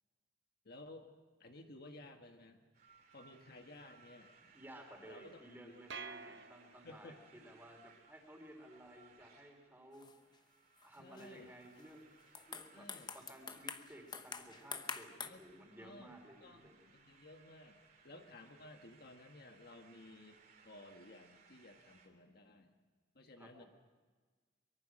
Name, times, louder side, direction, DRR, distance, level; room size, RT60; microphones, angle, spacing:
voice 1, 0.6-1.1 1.4-2.6 3.1-4.3 5.1-5.8 6.8-7.2 11.0-11.6 12.7-13.2 15.2-15.4 15.8-17.8 18.0-20.4 20.6-22.7 23.1-23.6, left 2 dB, 55° left, 4 dB, 1.6 m, -56 dB
sound 1, 2.7-22.1, right 5 dB, 50° right, 3.2 m, -66 dB
voice 2, 4.5-10.1 10.8-12.1 12.5-12.9 13.1-16.9 23.4-23.7, right 1 dB, 10° right, 2 dB, 3.9 m, -56 dB
sound 2, 5.9-7.3, right 5 dB, 70° right, 1.0 m, -49 dB
sound 3, 9.9-10.4 10.8-11.3 11.8-12.0 12.3-15.3, left 5 dB, 25° left, 0.9 m, -46 dB
23.5 x 22.5 x 6.4 m, 1.4 s
head